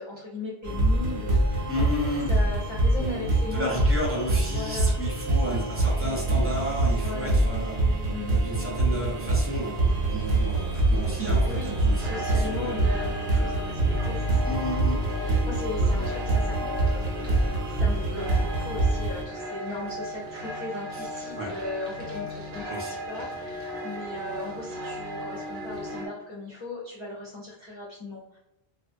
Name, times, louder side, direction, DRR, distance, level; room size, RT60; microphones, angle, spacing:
voice 1, 0.0-1.9 2.3-3.8 4.4-5.0 5.3-5.7 7.0-7.4 8.1-8.4 11.5-28.4, left 2 dB, 45° left, -5 dB, 0.4 m, -38 dB
sound 1, 0.6-19.2, right 2 dB, 90° right, 0.9 m, -25 dB
voice 2, 1.7-2.3 3.0-7.8 8.3-12.8 14.4-15.0 21.4-21.5 22.7-22.9, equal, 15° right, -5 dB, 0.7 m, -32 dB
sound 2, 9.1-26.1, equal, 55° right, 0.7 m, -37 dB
2.3 x 2.2 x 2.5 m, 0.85 s
omnidirectional pair, 1.1 m